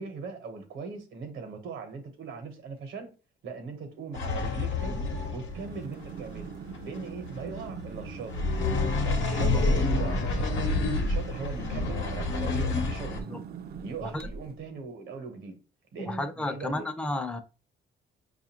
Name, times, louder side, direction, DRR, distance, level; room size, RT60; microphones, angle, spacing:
voice 1, 0.0-3.1 3.4-5.0 5.3-6.5 6.8-8.5 9.0-13.2 13.8-15.6 15.9-16.9, right 4 dB, 80° right, 1.0 m, -40 dB
sound 1, 4.1-13.2, left 3 dB, 75° left, 0.9 m, -29 dB
sound 2, 5.5-14.7, right 7 dB, 50° right, 0.4 m, -42 dB
voice 2, 16.0-17.4, left 2 dB, 5° left, 0.5 m, -32 dB
4.8 x 2.4 x 2.9 m
cardioid pair, 90°, 20 cm